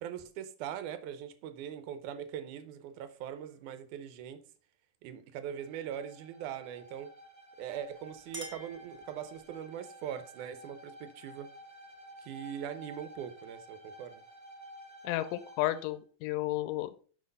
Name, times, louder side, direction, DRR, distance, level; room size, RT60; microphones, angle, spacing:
voice 1, 0.0-4.4 5.0-7.1 7.6-11.5 12.2-14.2, right 9 dB, 70° right, 2.1 m, -41 dB
Bowed string instrument, 5.5-15.9, right 1 dB, 40° right, 0.6 m, -52 dB
Chink clink, 7.8-9.6, equal, 15° right, 1.2 m, -48 dB
voice 2, 15.0-17.1, left 16 dB, 80° left, 2.1 m, -33 dB
6.3 x 6.2 x 5.3 m
omnidirectional pair, 3.9 m